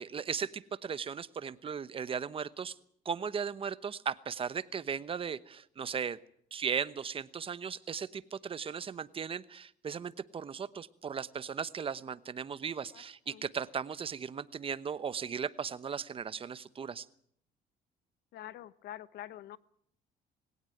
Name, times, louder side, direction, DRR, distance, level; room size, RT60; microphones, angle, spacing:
voice 1, 0.0-2.7 3.0-6.2 6.5-17.1, right 6 dB, 35° right, 16 dB, 1.0 m, -37 dB
voice 2, 12.9-13.4 18.3-19.6, left 12 dB, 75° left, 17 dB, 1.0 m, -46 dB
19.5 x 17.5 x 9.2 m, 0.66 s
cardioid pair, 110°, 17 cm